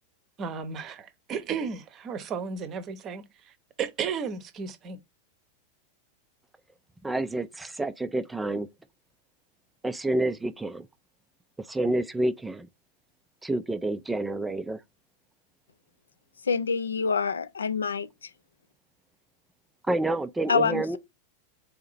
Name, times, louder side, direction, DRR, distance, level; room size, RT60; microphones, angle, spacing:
voice 1, 0.4-3.2 3.8-5.0, right 6 dB, 30° right, 0.8 m, -33 dB
voice 2, 7.0-8.7 9.8-10.9 11.6-12.7 13.4-14.8 19.9-21.0, right 2 dB, 10° right, 0.4 m, -28 dB
voice 3, 16.5-18.1 20.5-21.0, left 5 dB, 70° left, 0.4 m, -26 dB
4.2 x 2.8 x 3.9 m
figure-of-eight pair, 90°, 0 cm